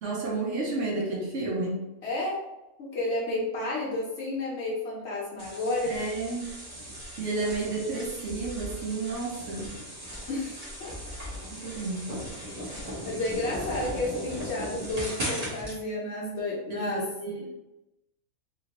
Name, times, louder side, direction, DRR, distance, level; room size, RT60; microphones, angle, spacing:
voice 1, 0.0-1.8 5.9-6.5 7.2-9.7 11.5-12.1 16.7-17.5, right 3 dB, 65° right, -2 dB, 0.9 m, -31 dB
voice 2, 2.0-2.4 2.8-6.0 10.3-10.9 12.6-17.0 17.4-17.5, left 2 dB, 55° left, -4 dB, 0.9 m, -31 dB
sound 1, 5.4-15.8, equal, 30° right, 0.9 m, -38 dB
2.9 x 2.8 x 2.8 m, 0.95 s
omnidirectional pair, 1.5 m